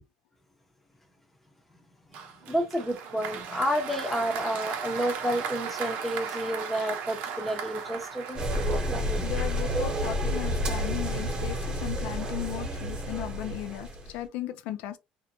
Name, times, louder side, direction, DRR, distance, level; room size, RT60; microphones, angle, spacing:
voice 1, 2.1-8.4 9.7-9.8, equal, 5° left, 0.8 m, -30 dB
Applause, 2.1-9.2, right 7 dB, 70° right, 0.6 m, -36 dB
sound 1, 8.4-14.2, equal, 30° right, 1.0 m, -30 dB
voice 2, 9.2-15.0, left 13 dB, 75° left, 0.4 m, -36 dB
2.6 x 2.1 x 2.8 m
cardioid pair, 125°, 3 cm